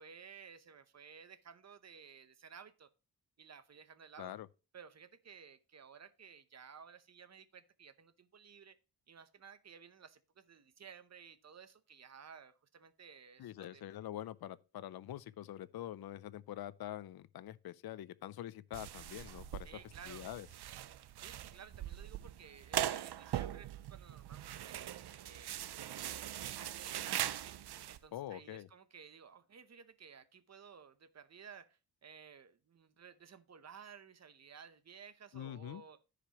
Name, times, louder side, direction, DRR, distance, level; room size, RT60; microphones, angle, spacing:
voice 1, 0.0-2.9 3.4-4.3 4.7-8.8 9.1-13.9 19.6-20.3 21.2-27.6 27.9-36.0, right 6 dB, 40° right, 0.8 m, -56 dB
voice 2, 13.4-19.7 20.1-20.5 28.1-28.7 35.3-35.8, left 12 dB, 65° left, 0.5 m, -45 dB
sound 1, 18.7-28.0, right 12 dB, 75° right, 0.6 m, -41 dB
13.5 x 5.1 x 2.9 m
wide cardioid pair, 140°, 40 cm